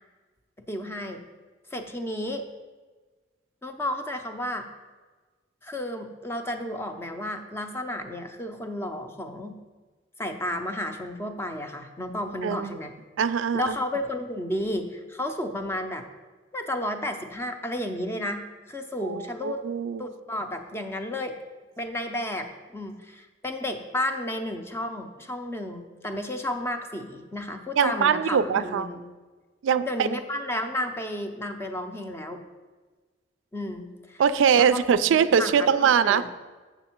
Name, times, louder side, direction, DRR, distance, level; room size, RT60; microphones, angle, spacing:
voice 1, 0.7-1.2 1.7-2.5 3.6-4.7 5.6-9.6 10.2-12.9 13.5-16.0 16.5-19.6 20.0-21.4 21.8-22.5 22.7-29.0 29.8-32.4 33.5-34.2 34.6-35.0 35.4-36.3, left 1 dB, 15° left, 6 dB, 0.6 m, -32 dB
voice 2, 12.4-12.8 13.2-13.7 19.0-20.0 27.8-28.9 29.6-30.1 34.2-36.4, right 7 dB, 80° right, 13 dB, 0.3 m, -22 dB
7.0 x 6.4 x 4.4 m, 1.3 s
head